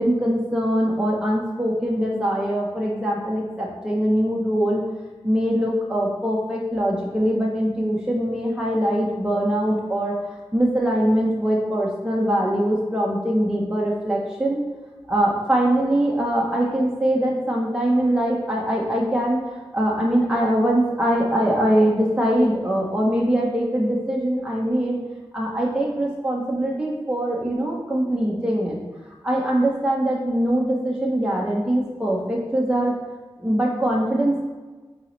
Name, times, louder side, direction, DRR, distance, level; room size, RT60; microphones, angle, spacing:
voice 1, 0.0-4.8 5.2-10.1 10.5-14.6 15.1-19.4 19.7-25.0 25.3-28.8 29.2-32.9 33.4-34.5, right 1 dB, 10° right, -4 dB, 1.2 m, -22 dB
8.2 x 4.0 x 3.4 m, 1.3 s
cardioid pair, 50°, 10 cm